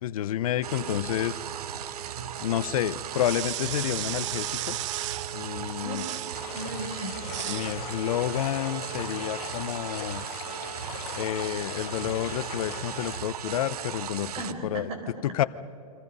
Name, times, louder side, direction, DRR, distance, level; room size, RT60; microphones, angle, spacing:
voice 1, 0.0-1.4 2.4-4.8 5.3-6.0 7.5-10.2 11.1-14.3 14.6-14.9 15.2-15.4, left 12 dB, 70° left, 16 dB, 0.7 m, -29 dB
sound 1, 0.6-14.5, right 9 dB, 85° right, 1.2 m, -36 dB
sound 2, 3.1-5.4 5.9-6.4 7.2-7.7, right 15 dB, 50° right, 0.6 m, -34 dB
voice 2, 5.6-6.2 6.5-7.9 14.3-15.5, right 1 dB, 30° right, 3 dB, 5.0 m, -38 dB
sound 3, 6.3-13.2, left 17 dB, 35° left, 0.7 m, -42 dB
29.0 x 25.5 x 5.6 m, 2.9 s
hypercardioid pair, 150°, 19 cm